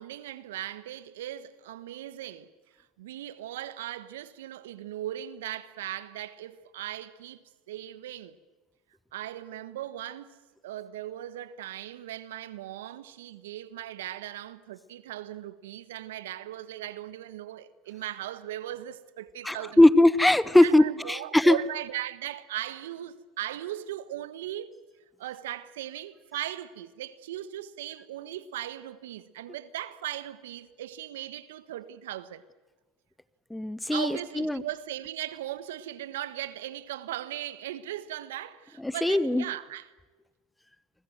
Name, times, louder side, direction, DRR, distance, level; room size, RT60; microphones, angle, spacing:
voice 1, 0.0-2.5 3.0-8.4 9.1-19.9 20.6-24.7 25.2-32.4 33.9-39.9, right 13 dB, 75° right, 1.4 m, -38 dB
voice 2, 19.4-21.6 33.5-34.6 38.8-39.4, left 1 dB, 5° left, 1.0 m, -21 dB
28.0 x 22.5 x 7.8 m
hypercardioid pair, 85°, 0 cm